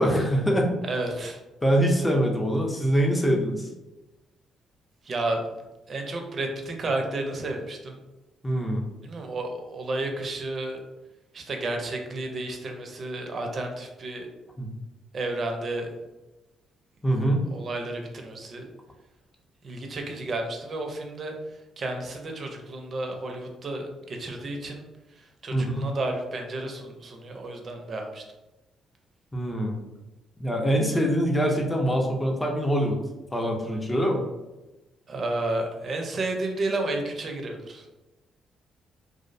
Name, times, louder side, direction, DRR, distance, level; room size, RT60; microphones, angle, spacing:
voice 1, 0.0-0.7 1.6-3.7 8.4-8.8 14.6-14.7 17.0-17.4 25.5-25.8 29.3-29.8 30.4-33.0 33.3-34.2, equal, 15° left, 0 dB, 0.5 m, -24 dB
voice 2, 0.9-1.4 5.0-5.4 5.9-8.0 9.0-10.8 11.3-14.3 15.1-15.9 17.5-18.7 19.6-28.2 35.1-37.9, right 2 dB, 45° right, 3 dB, 0.5 m, -32 dB
2.5 x 2.0 x 2.5 m, 1.0 s
cardioid pair, 90°, 0 cm